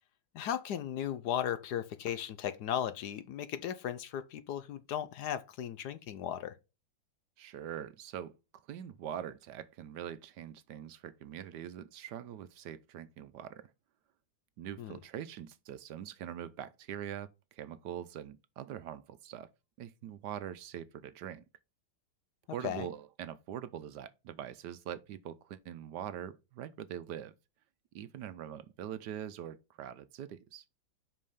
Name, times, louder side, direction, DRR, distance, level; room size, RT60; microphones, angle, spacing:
voice 1, 0.3-6.5 14.8-14.9 22.6-22.9, left 10 dB, 70° left, 1.1 m, -36 dB
voice 2, 7.4-8.3 8.7-13.7 14.6-19.5 19.8-21.4 22.5-27.3 27.9-30.6, right 10 dB, 70° right, 1.1 m, -43 dB
5.6 x 5.2 x 5.5 m
omnidirectional pair, 2.0 m